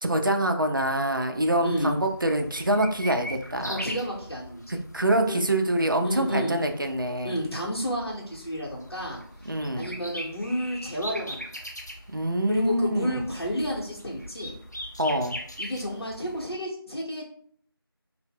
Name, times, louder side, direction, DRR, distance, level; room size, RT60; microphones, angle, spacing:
voice 1, 0.0-3.8 4.7-7.4 9.5-9.9 12.1-13.2 15.0-15.4, right 1 dB, 55° right, 5 dB, 0.4 m, -25 dB
sound 1, 1.3-16.6, equal, 45° left, 0.4 m, -41 dB
voice 2, 1.6-1.9 3.7-4.6 5.3-5.4 6.0-6.6 7.2-11.5 12.5-14.5 15.6-17.2, equal, 80° left, -5 dB, 0.7 m, -31 dB
2.0 x 2.0 x 3.5 m, 0.62 s
figure-of-eight pair, 180°, 13 cm